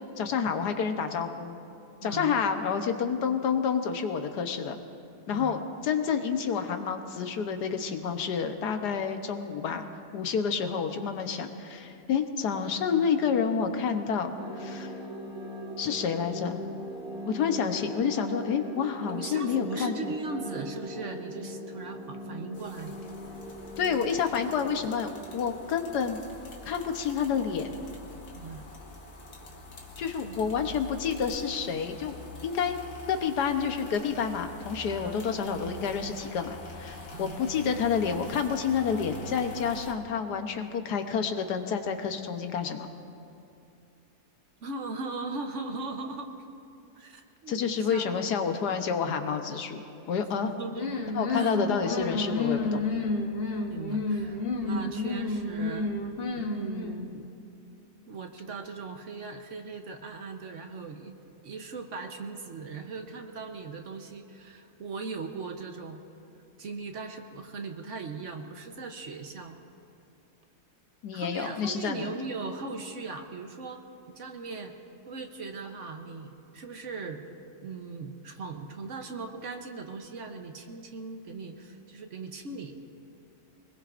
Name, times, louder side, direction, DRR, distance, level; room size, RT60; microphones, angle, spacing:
voice 1, 0.2-1.6 2.0-4.8 5.3-9.9 10.1-14.9 15.8-16.6 17.3-20.1 23.8-26.2 26.6-27.7 30.0-32.2 32.4-32.8 33.1-42.9 47.5-50.5 51.1-52.8 71.0-72.2, left 6 dB, 85° left, 6 dB, 1.5 m, -29 dB
voice 2, 2.0-2.4 5.3-5.6 19.1-22.9 28.3-28.6 30.2-30.5 35.0-35.2 37.1-37.4 44.6-46.3 46.9-48.5 50.5-51.0 51.3-51.5 53.7-56.0 56.3-57.3 58.1-61.1 61.4-66.0 66.6-69.6 71.1-73.8 74.1-74.7 75.1-77.2 77.6-82.7, right 4 dB, 55° right, 5 dB, 1.1 m, -39 dB
sound 1, 14.4-26.2, equal, 5° right, 1.8 m, -40 dB
sound 2, 22.5-39.9, left 2 dB, 70° left, 2.0 m, -45 dB
sound 3, 50.7-57.1, left 3 dB, 40° left, 1.1 m, -30 dB
24.0 x 20.5 x 2.5 m, 2.6 s
omnidirectional pair, 1.7 m